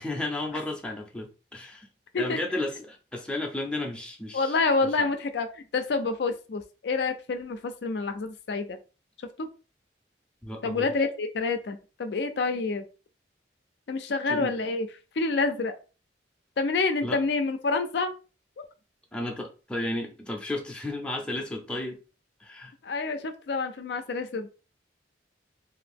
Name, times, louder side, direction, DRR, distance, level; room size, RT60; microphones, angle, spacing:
voice 1, 0.0-1.9 2.2-4.5 5.0-5.1 10.4-10.9 14.3-14.5 17.0-17.2 19.1-22.0 22.4-22.7, left 1 dB, 5° left, 0.5 m, -33 dB
voice 2, 4.3-8.8 9.4-9.5 10.6-12.8 13.9-14.9 15.2-15.8 16.6-18.1 18.6-18.7 22.8-24.5, left 3 dB, 65° left, 0.4 m, -28 dB
2.8 x 2.5 x 3.4 m
head